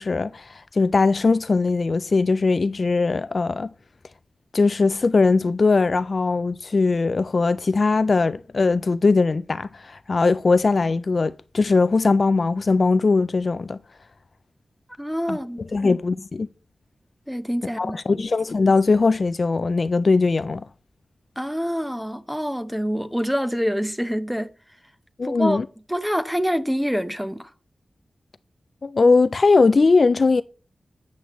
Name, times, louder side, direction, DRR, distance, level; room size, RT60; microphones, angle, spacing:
voice 1, 0.0-3.7 4.5-13.8 15.3-15.4 15.7-16.5 17.8-20.6 25.2-25.7 28.8-30.4, left 3 dB, 50° left, 0.3 m, -20 dB
voice 2, 15.0-15.6 17.3-18.2 21.4-24.5 25.2-25.6 25.9-27.5, equal, ahead, 0.7 m, -26 dB
8.3 x 7.8 x 3.0 m
wide cardioid pair, 110°, 0 cm